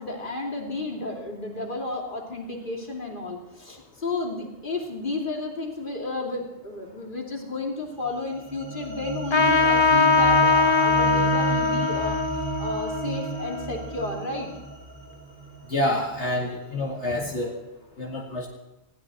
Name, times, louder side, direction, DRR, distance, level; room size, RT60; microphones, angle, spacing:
voice 1, 0.0-14.5, left 2 dB, 45° left, 0 dB, 3.0 m, -32 dB
sound 1, 8.0-16.5, right 4 dB, 75° right, 3.5 m, -33 dB
Trumpet, 9.3-14.3, left 3 dB, 30° left, 0.7 m, -22 dB
voice 2, 15.7-17.5 18.0-18.5, left 1 dB, 70° left, -1 dB, 2.3 m, -27 dB
20.5 x 16.5 x 4.3 m, 0.95 s
omnidirectional pair, 1.2 m